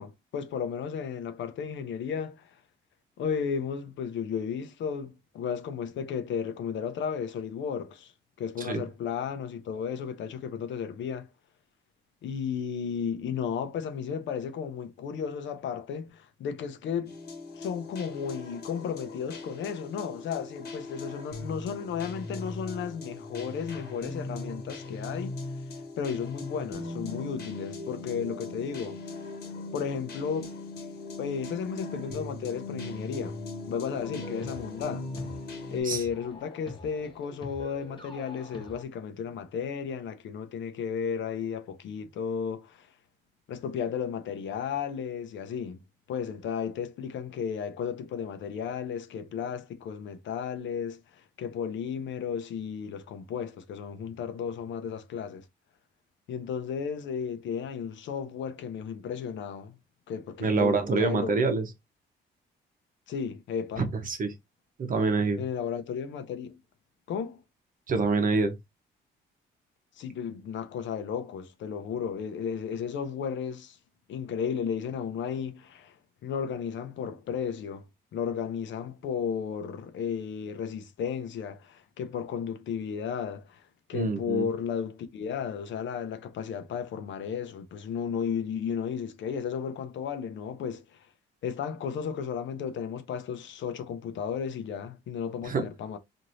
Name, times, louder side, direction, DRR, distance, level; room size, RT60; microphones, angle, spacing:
voice 1, 0.0-2.5 3.2-8.1 8.4-11.3 12.2-17.1 17.6-25.4 26.0-29.0 29.7-30.5 31.2-33.4 33.7-35.1 35.7-42.9 43.5-45.8 46.1-51.0 51.4-55.5 56.3-59.7 60.1-61.3 63.1-63.9 65.4-66.6 67.1-67.4 70.0-73.8 74.1-75.9 76.2-77.8 78.1-83.6 83.9-91.0 91.4-96.0, left 7 dB, 70° left, 0.6 m, -34 dB
sound 1, 17.1-35.8, left 3 dB, 50° left, 1.2 m, -39 dB
sound 2, 33.9-38.8, left 2 dB, 25° left, 0.9 m, -45 dB
voice 2, 60.4-61.7 64.1-64.3 64.8-65.4 67.9-68.5 83.9-84.5 95.4-95.7, right 3 dB, 45° right, 0.9 m, -26 dB
3.0 x 2.6 x 2.6 m
cardioid pair, 90°, 20 cm